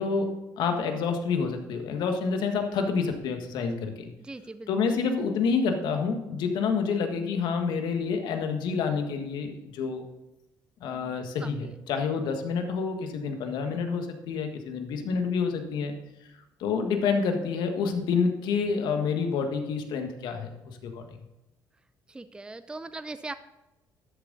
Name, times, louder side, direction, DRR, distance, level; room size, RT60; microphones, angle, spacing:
voice 1, 0.0-4.1 4.7-10.0 10.8-15.9 16.6-21.0, left 5 dB, 75° left, 5 dB, 1.5 m, -28 dB
voice 2, 4.2-5.0 11.4-11.8 22.1-23.3, right 2 dB, 10° right, 11 dB, 0.5 m, -40 dB
12.0 x 7.5 x 4.0 m, 0.97 s
cardioid pair, 90°, 8 cm